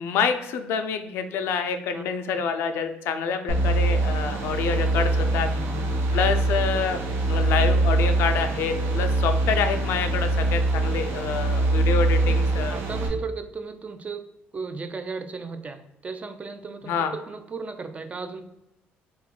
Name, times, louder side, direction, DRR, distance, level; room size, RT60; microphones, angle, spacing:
voice 1, 0.0-5.5 6.1-7.0 7.3-12.8 16.9-17.1, left 6 dB, 75° left, 8 dB, 0.3 m, -27 dB
sound 1, 3.5-13.1, right 2 dB, 75° right, 0.7 m, -23 dB
voice 2, 5.5-5.9 7.2-7.5 12.3-12.4 12.7-14.2 14.5-18.4, right 4 dB, 30° right, 9 dB, 0.4 m, -35 dB
3.0 x 2.3 x 3.6 m, 0.84 s
cardioid pair, 85°, 4 cm